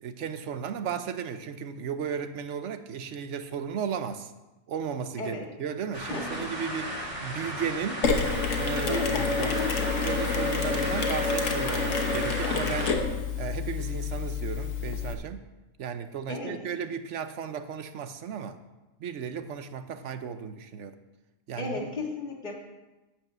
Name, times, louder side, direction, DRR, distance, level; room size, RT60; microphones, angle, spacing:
voice 1, 0.0-4.3 4.7-8.1 8.5-9.5 10.0-13.0 13.4-15.4 15.8-18.6 19.0-21.0 21.5-21.9, right 7 dB, 70° right, 10 dB, 1.0 m, -35 dB
sound 1, 5.9-12.9, right 1 dB, 25° right, 2.5 m, -35 dB
voice 2, 6.1-6.5 8.9-9.9 16.3-16.6 21.6-22.5, left 2 dB, 35° left, -2 dB, 2.0 m, -34 dB
Mechanisms, 8.0-15.1, left 4 dB, 80° left, 1.5 m, -28 dB
11.5 x 5.0 x 7.9 m, 1.1 s
omnidirectional pair, 1.3 m